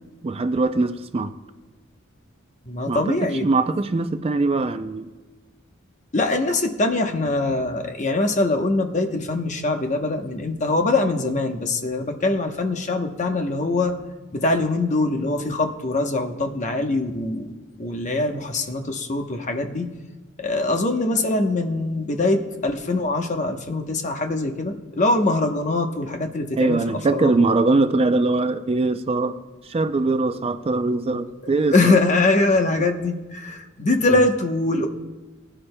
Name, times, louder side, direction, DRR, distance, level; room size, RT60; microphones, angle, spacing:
voice 1, 0.2-1.3 2.9-5.1 26.6-29.4 29.6-32.0 34.1-34.2, right 3 dB, 30° right, 0.4 m, -22 dB
voice 2, 2.7-3.5 6.1-13.9 14.3-17.5 17.8-19.9 20.4-26.8 27.1-27.5 31.6-34.9, left 2 dB, 40° left, 0.9 m, -23 dB
20.0 x 10.0 x 2.2 m
head